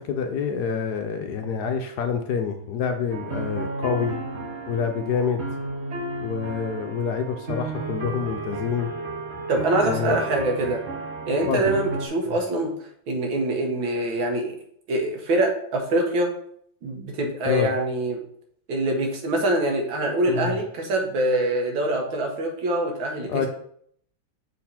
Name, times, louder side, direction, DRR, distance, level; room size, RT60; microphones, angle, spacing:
voice 1, 0.0-4.2 4.7-5.4 6.2-8.9 9.8-10.2 11.5-11.7 12.3-12.4 17.4-17.7 20.3-20.6 23.3-23.5, left 6 dB, 70° left, 5 dB, 1.0 m, -27 dB
sound 1, 3.1-12.1, right 2 dB, 40° right, 1.1 m, -33 dB
voice 2, 9.5-10.8 11.3-12.7 13.1-14.6 14.9-16.3 16.8-18.2 18.7-23.5, right 1 dB, 85° right, 2 dB, 2.0 m, -24 dB
6.5 x 4.1 x 4.2 m, 0.66 s
omnidirectional pair, 2.1 m